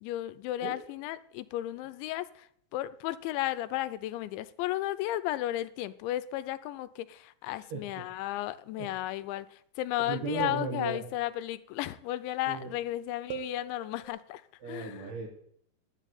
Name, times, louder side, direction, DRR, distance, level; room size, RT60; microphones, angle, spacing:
voice 1, 0.0-15.1, left 14 dB, 85° left, 15 dB, 3.0 m, -34 dB
voice 2, 10.1-11.0 12.5-12.7 14.6-15.3, right 4 dB, 65° right, -1 dB, 3.4 m, -35 dB
sound 1, 10.4-11.5 13.3-14.1, right 7 dB, 90° right, 1.6 m, -41 dB
10.5 x 9.0 x 9.2 m, 0.67 s
omnidirectional pair, 5.2 m